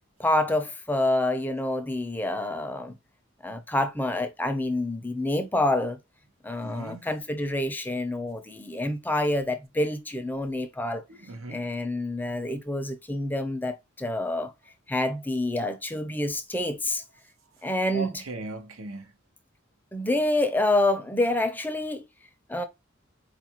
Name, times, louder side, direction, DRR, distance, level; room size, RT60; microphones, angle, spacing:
voice 1, 0.2-3.0 3.4-6.0 6.4-11.0 11.5-14.5 14.9-17.0 17.6-18.1 19.9-22.1 22.5-22.6, left 1 dB, 10° left, 0.4 m, -27 dB
voice 2, 6.6-7.1 11.1-11.7 17.9-19.1, right 2 dB, 90° right, 0.8 m, -38 dB
4.5 x 2.4 x 2.9 m
head